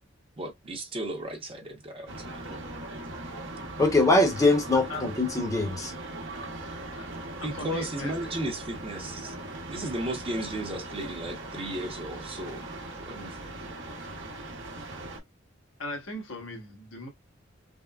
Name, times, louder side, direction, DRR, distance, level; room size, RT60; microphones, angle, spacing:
voice 1, 0.4-2.6 7.4-9.3 9.6-12.6 13.1-13.4, right 1 dB, 30° right, 0.8 m, -35 dB
sound 1, 2.1-15.2, right 2 dB, 65° right, 0.9 m, -40 dB
voice 2, 3.8-5.9, left 2 dB, 15° left, 0.8 m, -22 dB
voice 3, 6.9-8.1 15.8-17.1, left 2 dB, 75° left, 1.2 m, -39 dB
3.5 x 2.1 x 2.3 m
head